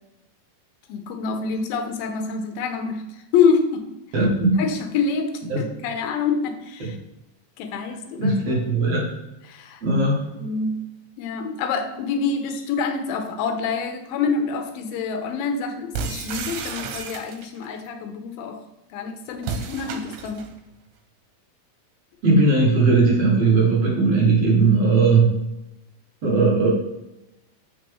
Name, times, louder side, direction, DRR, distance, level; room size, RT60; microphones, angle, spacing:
voice 1, 0.9-3.9 4.6-7.0 7.6-8.6 9.5-9.8 10.4-10.8 11.2-18.6 18.9-20.5, left 5 dB, 85° left, 6 dB, 2.6 m, -26 dB
voice 2, 4.1-4.7 5.5-5.6 6.8-6.9 8.2-9.1 9.8-10.3 22.2-25.4 26.2-26.7, right 3 dB, 50° right, -4 dB, 2.5 m, -18 dB
sound 1, 15.9-17.7 19.4-20.5, right 5 dB, 90° right, 2.6 m, -32 dB
7.6 x 5.5 x 3.6 m, 0.94 s
omnidirectional pair, 4.1 m